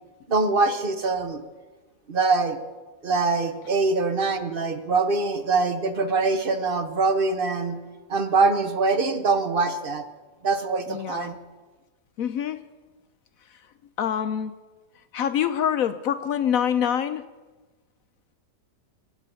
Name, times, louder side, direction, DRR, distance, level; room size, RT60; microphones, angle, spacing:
voice 1, 0.3-1.4 2.1-2.6 3.0-7.8 8.1-10.0 10.4-11.3, right 3 dB, 40° right, 8 dB, 0.9 m, -23 dB
voice 2, 10.9-11.4 12.2-12.6 13.5-13.6 14.0-14.5 15.1-17.2, left 9 dB, 65° left, 11 dB, 0.9 m, -25 dB
23.0 x 8.4 x 5.6 m, 1.2 s
omnidirectional pair, 1.9 m